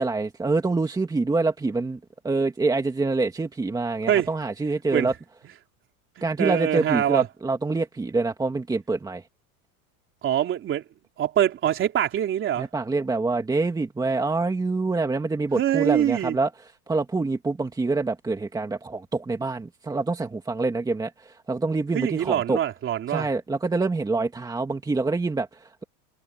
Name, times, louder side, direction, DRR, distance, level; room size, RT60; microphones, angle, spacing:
voice 1, 0.0-5.1 6.2-9.2 12.6-16.5 16.9-22.6 23.1-25.8, right 3 dB, 10° right, 2.3 m, -26 dB
voice 2, 6.4-7.3 10.2-10.8 11.2-12.7 15.5-16.4 21.9-23.3, right 11 dB, 30° right, 3.3 m, -24 dB
supercardioid pair, 150°, 44 cm